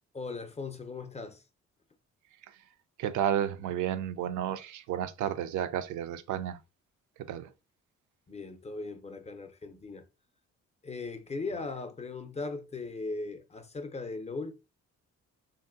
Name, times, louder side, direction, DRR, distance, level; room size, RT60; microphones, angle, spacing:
voice 1, 0.1-1.4 8.3-10.1 10.8-14.5, left 3 dB, 20° left, 0.5 m, -38 dB
voice 2, 3.0-6.6 7.3-7.5, right 10 dB, 80° right, 0.5 m, -32 dB
3.1 x 2.6 x 2.5 m
cardioid pair, 90°, 30 cm